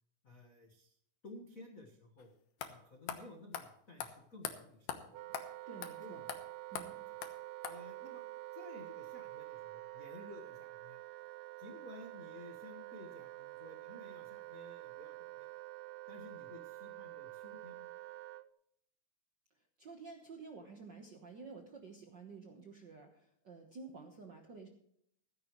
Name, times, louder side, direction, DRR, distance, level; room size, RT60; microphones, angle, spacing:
voice 1, 0.2-1.0 1.2-2.3 2.6-5.3 6.0-6.3 6.9-7.0 7.7-8.2 8.5-11.0 11.6-15.5 16.1-17.9, left 2 dB, 45° left, 1 dB, 1.1 m, -54 dB
sound 1, 2.2-2.3 2.6-2.7 3.1-3.2 3.5-3.7 4.0-4.1 4.4-4.5 4.9-5.0 5.3-5.5 5.8-5.9 6.3-6.4 6.8-6.9 7.2-7.3 7.6-7.8, left 9 dB, 80° left, 2.7 m, -40 dB
Wind instrument woodwind instrument, 5.1-18.5, right 18 dB, 80° right, 1.6 m, -48 dB
voice 2, 5.7-6.2 6.7-7.0 19.8-24.7, right 4 dB, 60° right, 3 dB, 1.1 m, -51 dB
15.5 x 13.5 x 3.1 m, 0.69 s
omnidirectional pair, 3.7 m